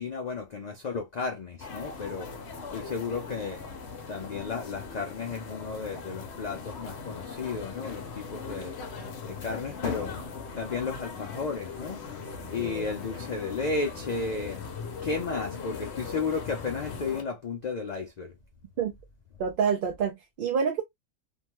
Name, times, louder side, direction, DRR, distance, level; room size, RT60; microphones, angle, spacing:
voice 1, 0.0-2.3 2.7-3.6 4.1-8.7 9.3-10.1 10.6-12.0 12.5-14.6 15.0-18.3, left 4 dB, 85° left, 0.3 m, -33 dB
sound 1, 1.6-17.2, left 5 dB, 60° left, 0.9 m, -39 dB
voice 2, 19.4-20.8, right 6 dB, 60° right, 0.5 m, -27 dB
2.7 x 2.2 x 2.8 m
omnidirectional pair, 1.4 m